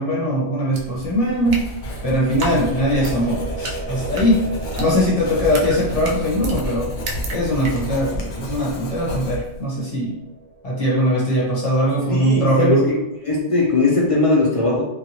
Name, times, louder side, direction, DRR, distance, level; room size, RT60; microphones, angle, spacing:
voice 1, 0.0-1.6 2.0-4.4 4.8-6.9 7.3-10.2 10.6-12.8, equal, 35° left, -6 dB, 1.0 m, -20 dB
sound 1, 0.7-8.2, right 1 dB, 65° right, 0.7 m, -34 dB
Writing, 1.5-9.7, equal, 75° left, 1.0 m, -32 dB
sound 2, 1.7-11.6, right 2 dB, 10° left, 0.7 m, -36 dB
voice 2, 12.1-13.0 13.2-14.8, left 2 dB, 60° left, -4 dB, 0.3 m, -19 dB
2.8 x 2.4 x 2.8 m, 0.88 s
omnidirectional pair, 1.2 m